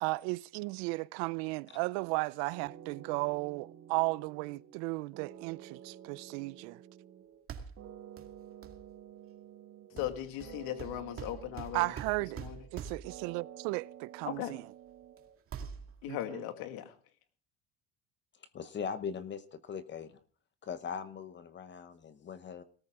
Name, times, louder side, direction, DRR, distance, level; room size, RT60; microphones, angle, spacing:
voice 1, 0.0-6.8 11.7-12.4 12.7-14.6 16.1-16.4, right 25 dB, 80° right, 0.6 m, -35 dB
sound 1, 2.5-4.8 5.1-7.5 7.8-10.1 10.4-12.7 13.0-15.4, right 10 dB, 50° right, 2.3 m, -51 dB
sound 2, 7.5-7.9 8.2-8.3 8.6-8.8 10.0-13.2 14.3-14.4 14.9-15.2 15.5-16.2, right 7 dB, 35° right, 2.2 m, -44 dB
voice 2, 10.0-11.9 12.4-12.7 14.3-14.6 16.0-17.0, left 12 dB, 70° left, 2.1 m, -38 dB
voice 3, 18.5-20.1 20.6-22.6, left 6 dB, 30° left, 0.9 m, -40 dB
18.0 x 14.0 x 3.7 m
cardioid pair, 130°, 37 cm